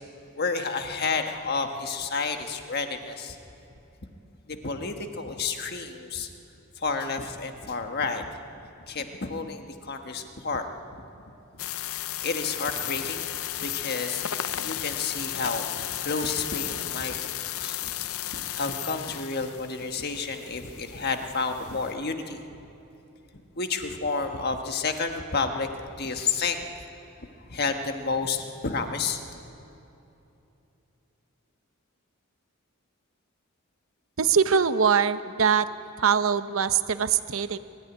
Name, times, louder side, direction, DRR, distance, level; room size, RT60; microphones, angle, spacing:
voice 1, 0.3-3.4 4.5-6.3 6.8-8.3 8.9-10.7 11.9-13.2 13.6-14.2 14.5-17.9 18.3-22.4 23.5-25.7 26.0-26.6 27.5-29.2, left 4 dB, 45° left, 5 dB, 1.5 m, -30 dB
sound 1, 11.6-21.9, left 12 dB, 75° left, 0.6 m, -34 dB
voice 2, 34.2-35.7 36.0-37.6, right 6 dB, 65° right, 12 dB, 0.8 m, -22 dB
23.5 x 14.0 x 9.9 m, 2.9 s
head